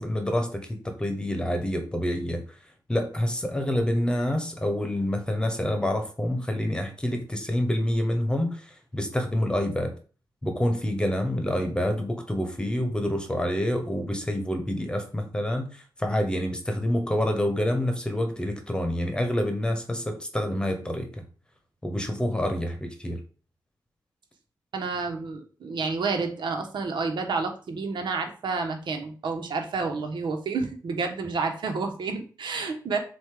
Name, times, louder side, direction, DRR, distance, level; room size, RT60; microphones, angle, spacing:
voice 1, 0.0-2.4 2.9-9.9 10.4-21.2 21.8-23.2, left 1 dB, 10° left, 5 dB, 1.1 m, -27 dB
voice 2, 24.7-33.0, right 4 dB, 90° right, 4 dB, 1.2 m, -30 dB
7.3 x 2.6 x 4.9 m, 0.39 s
wide cardioid pair, 135°, 8 cm